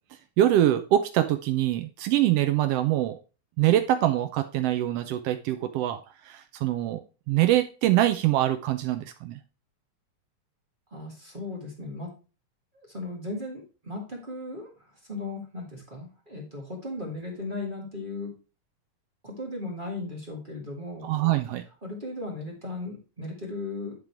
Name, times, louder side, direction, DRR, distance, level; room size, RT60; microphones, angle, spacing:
voice 1, 0.4-3.2 3.6-9.4 21.0-21.6, right 13 dB, 90° right, 9 dB, 1.3 m, -24 dB
voice 2, 10.9-12.1 12.7-14.7 15.1-18.3 19.2-21.3 21.8-23.9, left 2 dB, 20° right, -2 dB, 1.4 m, -36 dB
10.5 x 3.8 x 4.5 m, 0.34 s
omnidirectional pair, 3.3 m